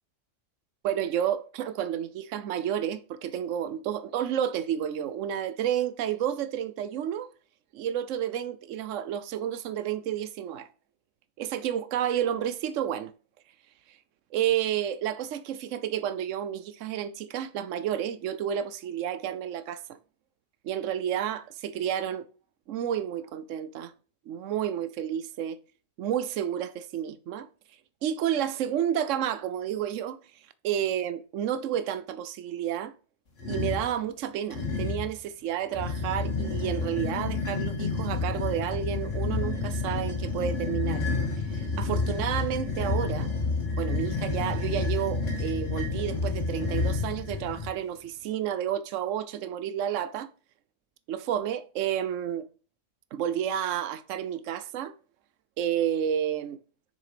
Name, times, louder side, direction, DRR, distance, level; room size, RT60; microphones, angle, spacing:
voice 1, 0.8-7.3 7.7-10.7 11.4-13.1 14.3-20.0 20.6-22.3 22.7-23.9 24.3-25.6 26.0-27.5 28.0-30.2 30.6-32.9 33.5-41.0 41.4-43.3 43.8-50.3 51.1-52.5 53.1-54.9 55.6-56.6, right 10 dB, 80° right, 1.0 m, -30 dB
sound 1, 33.4-33.9 34.5-35.1 35.7-47.7, left 3 dB, 75° left, 2.4 m, -30 dB
6.8 x 6.6 x 5.0 m
omnidirectional pair, 1.3 m